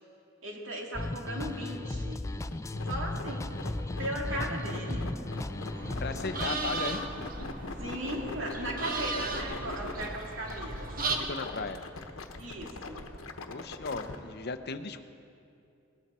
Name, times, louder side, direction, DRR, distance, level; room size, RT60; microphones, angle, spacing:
voice 1, 0.4-2.2 2.9-3.5 4.0-5.1 7.8-11.0 12.4-13.0, right 1 dB, 65° right, 0 dB, 2.2 m, -37 dB
sound 1, 0.9-6.5, left 2 dB, 15° left, 0.4 m, -36 dB
sound 2, 2.5-14.2, left 2 dB, 70° left, 1.1 m, -41 dB
sound 3, 5.7-11.2, right 3 dB, 45° right, 1.2 m, -36 dB
voice 2, 6.0-7.0 11.2-11.8 13.5-15.0, left 4 dB, 50° left, 9 dB, 0.7 m, -36 dB
19.5 x 14.0 x 4.3 m, 2.5 s
head